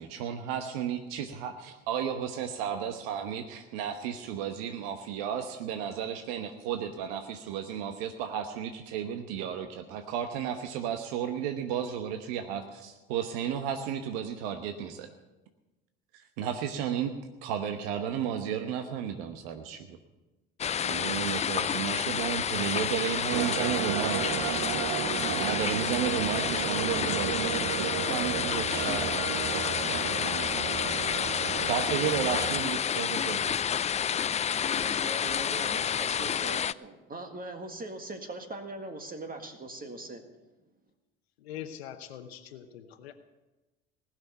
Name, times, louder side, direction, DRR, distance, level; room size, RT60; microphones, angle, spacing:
voice 1, 0.0-15.1 16.1-17.1 17.4-20.0 20.8-24.7 25.3-30.5 31.7-33.6, right 9 dB, 75° right, 7 dB, 1.1 m, -33 dB
sound 1, 20.6-36.7, left 8 dB, 25° left, 0.4 m, -30 dB
sound 2, 23.3-32.6, right 15 dB, 60° right, 0.5 m, -34 dB
voice 2, 34.7-40.2, right 2 dB, 30° right, 5 dB, 1.8 m, -41 dB
voice 3, 41.4-43.1, left 10 dB, 85° left, 8 dB, 0.9 m, -43 dB
19.5 x 6.4 x 8.1 m, 1.1 s
hypercardioid pair, 65°, 30 cm